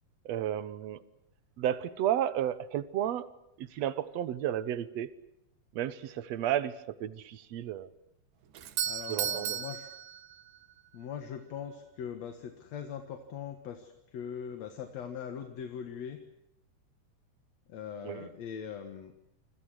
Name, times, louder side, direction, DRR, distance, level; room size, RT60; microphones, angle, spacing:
voice 1, 0.3-1.0 1.6-3.3 3.6-5.1 5.7-7.9 9.1-9.6 18.0-18.3, right 11 dB, 60° right, 14 dB, 2.1 m, -32 dB
Doorbell, 8.5-10.7, right 10 dB, 85° right, 3.0 m, -35 dB
voice 2, 8.8-9.9 10.9-16.2 17.7-19.1, left 8 dB, 60° left, 6 dB, 2.7 m, -41 dB
28.5 x 26.0 x 6.4 m, 0.81 s
omnidirectional pair, 3.7 m